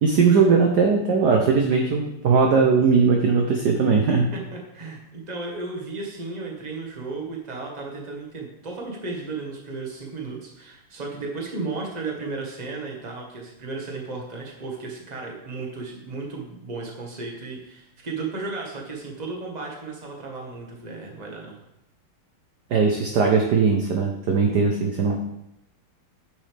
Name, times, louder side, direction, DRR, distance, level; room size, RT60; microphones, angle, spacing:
voice 1, 0.0-4.3 22.7-25.2, right 5 dB, 60° right, 2 dB, 1.2 m, -19 dB
voice 2, 4.3-21.6, right 3 dB, 20° right, -1 dB, 1.4 m, -34 dB
9.6 x 6.4 x 3.4 m, 0.83 s
omnidirectional pair, 2.4 m